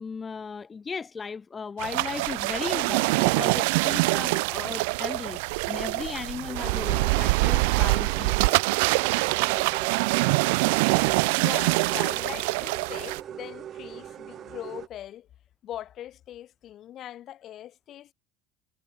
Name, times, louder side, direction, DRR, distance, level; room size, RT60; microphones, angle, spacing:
voice 1, 0.0-8.6 11.9-12.0, left 5 dB, 25° left, 0.8 m, -36 dB
sound 1, 1.8-13.2, right 28 dB, 85° right, 0.6 m, -24 dB
sound 2, 6.4-14.9, right 10 dB, 45° right, 3.7 m, -41 dB
voice 2, 11.4-15.3 15.6-18.1, left 12 dB, 50° left, 1.9 m, -40 dB
supercardioid pair, 105°, 0 cm